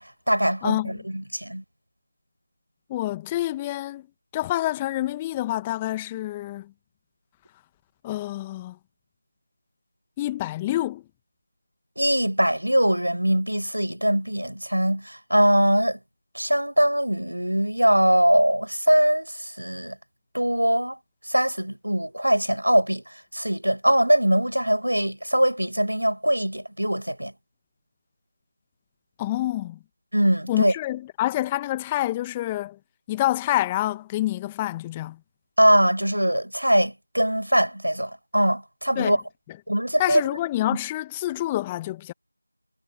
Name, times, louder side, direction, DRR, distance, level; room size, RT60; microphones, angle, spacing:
voice 1, 0.0-1.6 12.0-16.0 16.3-20.0 20.3-21.0 21.3-23.0 23.3-27.3 30.1-30.7 35.6-39.2 39.7-40.2, equal, 80° right, 7.5 m, -22 dB
voice 2, 0.6-1.0 2.9-4.0 4.3-6.7 8.0-8.8 10.2-11.0 29.2-29.8 30.5-32.8 33.1-35.2 38.9-39.2 40.0-42.1, left 15 dB, 10° left, 1.3 m, -27 dB
figure-of-eight pair, 170°, 0 cm